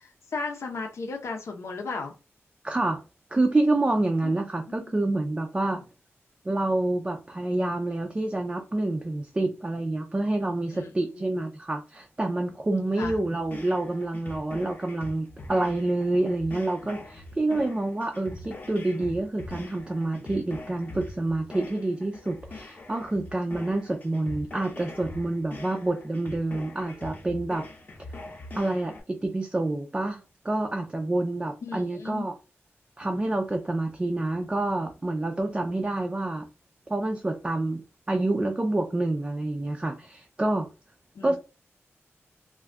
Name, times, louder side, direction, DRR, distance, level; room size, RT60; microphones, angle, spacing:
voice 1, 0.3-2.1 4.2-4.3 4.6-4.9 10.7-11.3 13.0-13.2 31.6-32.3 41.2-41.4, left 4 dB, 80° left, 0.7 m, -35 dB
voice 2, 2.6-3.0 3.3-5.8 6.5-27.6 28.5-32.4 33.0-36.5 36.9-37.8 38.1-40.7 41.2-41.4, right 2 dB, 20° right, 0.4 m, -27 dB
sound 1, 13.0-29.0, left 2 dB, 40° left, 0.7 m, -43 dB
2.5 x 2.3 x 3.3 m
wide cardioid pair, 145°, 5 cm